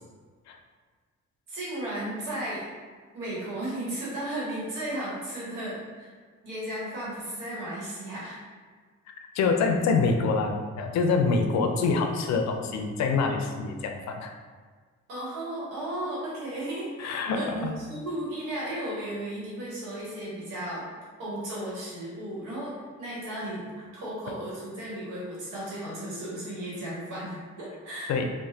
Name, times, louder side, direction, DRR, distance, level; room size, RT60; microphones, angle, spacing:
voice 1, 1.5-2.7 3.1-6.1 6.4-8.4 15.1-20.9 21.2-23.7 23.9-28.1, right 1 dB, 90° right, -7 dB, 1.1 m, -35 dB
voice 2, 9.3-14.3 17.0-17.8 28.1-28.2, left 4 dB, 60° left, 4 dB, 0.4 m, -25 dB
2.8 x 2.1 x 2.7 m, 1.5 s
supercardioid pair, 65°, 31 cm